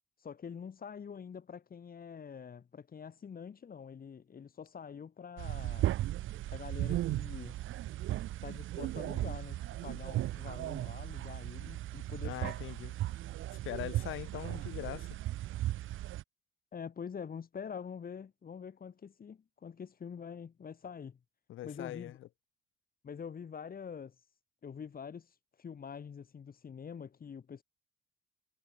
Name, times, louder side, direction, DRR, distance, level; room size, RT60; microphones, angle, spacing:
voice 1, 0.2-5.9 6.5-7.5 8.4-12.6 16.7-21.2 21.6-22.2 23.0-24.2 24.6-27.6, left 7 dB, 45° left, 6.5 m, -45 dB
sound 1, 5.4-16.2, right 14 dB, 85° right, 3.4 m, -36 dB
voice 2, 12.2-12.9 13.6-15.1 21.5-22.1, left 14 dB, 85° left, 4.5 m, -41 dB
cardioid pair, 90°, 20 cm